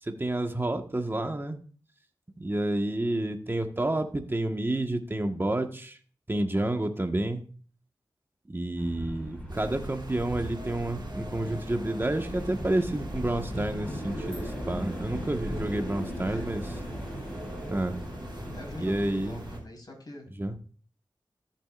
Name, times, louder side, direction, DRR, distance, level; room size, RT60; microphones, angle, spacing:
voice 1, 0.0-1.6 2.4-6.0 6.3-7.4 8.5-16.6 17.7-18.0 18.8-19.4 20.4-20.5, right 1 dB, 25° right, 5 dB, 1.5 m, -29 dB
sound 1, 8.8-19.6, equal, 15° left, 5.7 m, -38 dB
sound 2, 9.5-19.6, right 2 dB, 65° right, 3.0 m, -42 dB
voice 2, 16.2-16.5 18.1-20.3, left 1 dB, 50° left, 0 dB, 5.0 m, -44 dB
14.0 x 7.5 x 2.5 m, 0.42 s
cardioid pair, 45°, 8 cm